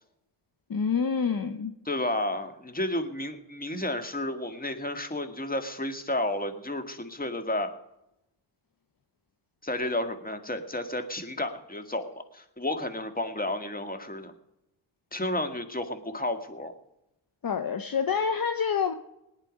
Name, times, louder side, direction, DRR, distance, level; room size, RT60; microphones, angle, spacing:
voice 1, 0.7-1.7 17.4-18.9, left 6 dB, 45° left, 8 dB, 1.0 m, -27 dB
voice 2, 1.9-7.7 9.6-14.3 15.1-16.7, left 1 dB, 20° left, 7 dB, 2.1 m, -32 dB
18.5 x 10.0 x 5.3 m, 0.87 s
cardioid pair, 55°, 49 cm